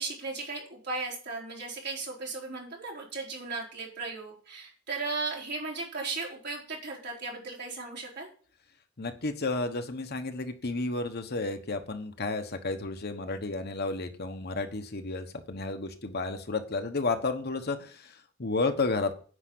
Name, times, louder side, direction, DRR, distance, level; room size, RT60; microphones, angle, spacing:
voice 1, 0.0-8.3, right 3 dB, 55° right, -2 dB, 4.2 m, -36 dB
voice 2, 9.0-19.1, left 3 dB, 50° left, 7 dB, 1.1 m, -32 dB
9.8 x 5.6 x 7.9 m, 0.42 s
head